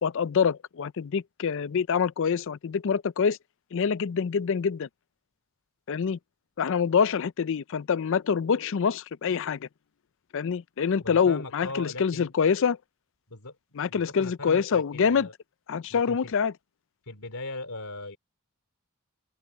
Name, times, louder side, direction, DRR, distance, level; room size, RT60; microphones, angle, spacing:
voice 1, 0.0-3.4 3.7-4.9 5.9-6.2 6.6-9.7 10.3-12.8 13.8-15.3 15.7-16.5, left 6 dB, 60° left, 0.4 m, -25 dB
voice 2, 11.0-12.3 13.3-13.5 13.9-15.3 15.9-16.3 17.0-18.2, left 2 dB, 80° left, 2.9 m, -39 dB
open air
head